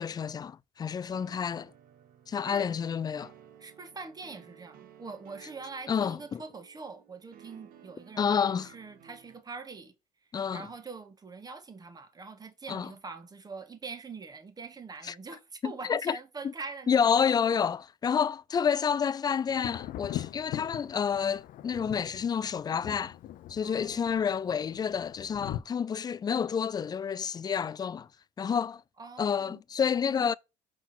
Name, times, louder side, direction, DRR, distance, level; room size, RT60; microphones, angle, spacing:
voice 1, 0.0-1.7 2.3-3.3 5.9-6.4 8.2-8.7 10.3-10.7 12.7-12.9 15.1-15.2 15.6-16.2 16.9-23.2 23.5-28.1 28.4-28.8 29.2-30.3, left 7 dB, 25° left, 0.4 m, -29 dB
sound 1, 1.1-9.4, right 9 dB, 65° right, 1.0 m, -56 dB
voice 2, 3.6-9.9 10.5-17.2 23.6-24.2 29.0-29.6 30.1-30.4, right 4 dB, 25° right, 1.3 m, -44 dB
Thunder, 19.5-25.6, left 12 dB, 60° left, 0.6 m, -41 dB
5.9 x 3.8 x 5.9 m
cardioid pair, 105°, 16 cm